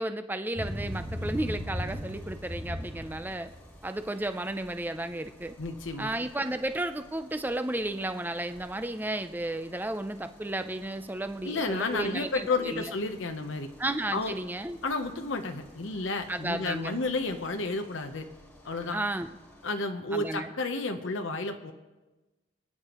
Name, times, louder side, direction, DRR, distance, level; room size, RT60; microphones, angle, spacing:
voice 1, 0.0-3.5 3.8-5.5 6.0-12.9 13.8-14.8 16.3-17.0 18.9-19.3 20.1-20.5, right 1 dB, 10° right, 9 dB, 0.5 m, -33 dB
sound 1, 0.5-19.6, equal, 10° left, 1.9 m, -44 dB
voice 2, 5.6-6.1 11.4-13.7 14.1-14.3 14.8-18.2 18.6-19.0 19.6-21.7, left 3 dB, 70° left, 5 dB, 0.9 m, -31 dB
26.5 x 9.6 x 3.0 m, 1.1 s
head